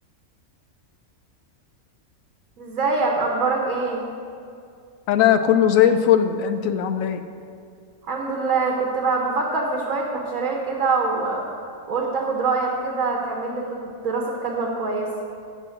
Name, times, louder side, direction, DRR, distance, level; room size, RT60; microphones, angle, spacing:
voice 1, 2.6-4.0 8.1-11.4 11.9-15.1, right 4 dB, 75° right, 0 dB, 1.4 m, -24 dB
voice 2, 5.1-7.2, left 9 dB, 75° left, 9 dB, 1.0 m, -18 dB
11.5 x 4.2 x 7.7 m, 2.4 s
omnidirectional pair, 1.5 m